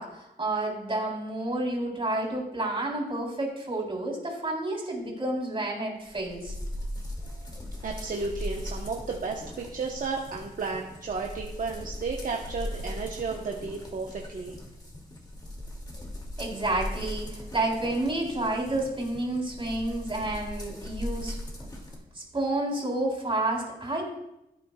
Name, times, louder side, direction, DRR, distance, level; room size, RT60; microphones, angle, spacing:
voice 1, 0.0-6.6 16.4-21.4 22.1-24.0, right 2 dB, 35° right, -2 dB, 3.7 m, -30 dB
sound 1, 6.1-22.0, left 1 dB, 25° left, 2.4 m, -39 dB
voice 2, 7.8-14.5, right 4 dB, 55° right, 0 dB, 1.0 m, -33 dB
16.0 x 9.2 x 2.3 m, 0.90 s
cardioid pair, 80°, 17 cm